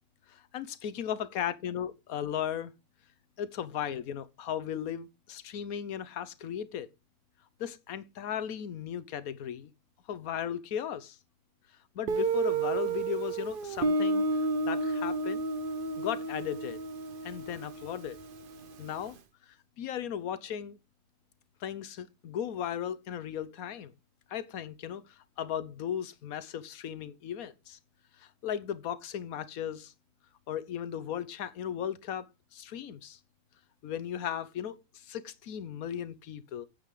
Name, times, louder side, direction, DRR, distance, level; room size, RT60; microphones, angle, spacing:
voice 1, 0.3-2.7 3.4-6.9 7.6-9.7 10.1-11.2 11.9-15.4 16.0-16.8 17.2-18.2 18.8-19.1 19.5-20.8 21.6-23.9 24.3-27.8 28.2-29.9 30.5-32.3 32.5-33.2 33.8-36.6, left 9 dB, 55° left, 1.1 m, -36 dB
Guitar, 12.1-18.7, right 3 dB, 75° right, 0.4 m, -31 dB
9.2 x 8.4 x 3.8 m
omnidirectional pair, 2.1 m